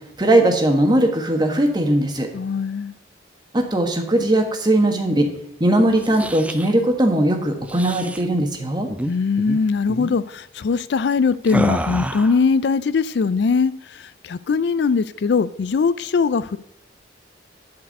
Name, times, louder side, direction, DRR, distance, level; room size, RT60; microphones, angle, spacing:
voice 1, 0.2-2.3 3.5-5.3 5.6-8.9, right 1 dB, 25° right, 4 dB, 1.4 m, -19 dB
voice 2, 2.3-2.9 9.0-16.6, left 5 dB, 65° left, 16 dB, 0.4 m, -21 dB
sound 1, 5.9-6.7 7.6-8.2 8.9-9.1 9.4-9.6 9.9-10.2 11.5-12.4, right 1 dB, 5° right, 0.4 m, -28 dB
11.5 x 4.7 x 8.4 m, 0.82 s
head